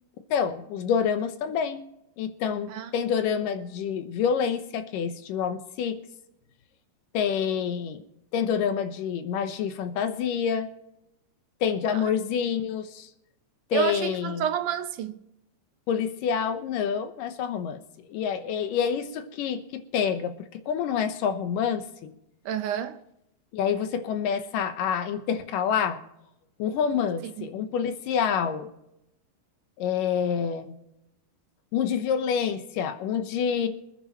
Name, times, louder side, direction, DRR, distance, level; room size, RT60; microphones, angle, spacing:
voice 1, 0.3-1.9 2.2-6.0 7.1-8.0 8.3-10.7 11.6-13.1 13.7-14.4 15.9-17.8 18.1-22.1 23.5-26.0 26.6-28.7 29.8-30.8 31.7-33.7, left 7 dB, 80° left, 2.7 m, -27 dB
voice 2, 13.7-15.2 22.5-23.0 27.2-27.5, right 8 dB, 75° right, 2.1 m, -29 dB
25.5 x 10.0 x 3.0 m
omnidirectional pair, 3.8 m